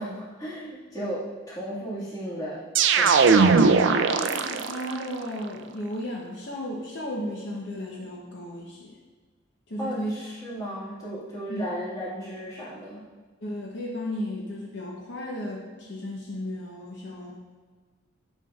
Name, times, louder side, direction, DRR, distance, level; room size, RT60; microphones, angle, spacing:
voice 1, 0.0-2.6 3.0-3.5 9.8-13.1, equal, 15° left, -9 dB, 1.8 m, -35 dB
sound 1, 2.7-5.0, right 5 dB, 60° right, 0.4 m, -19 dB
voice 2, 4.1-9.0 9.7-10.1 11.5-11.6 13.4-17.4, equal, 55° left, -2 dB, 0.7 m, -34 dB
8.9 x 5.4 x 2.4 m, 1.4 s
head